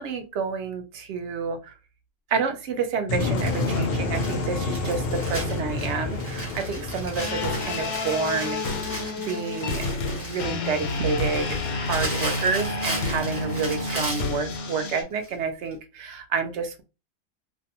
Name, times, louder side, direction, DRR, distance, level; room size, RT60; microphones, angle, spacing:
voice 1, 0.0-1.7 2.3-16.8, right 5 dB, 65° right, 7 dB, 0.7 m, -29 dB
sound 1, 3.1-9.0, left 2 dB, 65° left, 0.6 m, -29 dB
Crumpling crinkling, 3.4-14.4 15.2-15.3 15.7-15.8, right 1 dB, 10° right, 0.7 m, -36 dB
sound 2, 7.2-15.0, left 3 dB, 85° left, 1.1 m, -29 dB
2.6 x 2.1 x 2.8 m, 0.29 s
omnidirectional pair, 1.5 m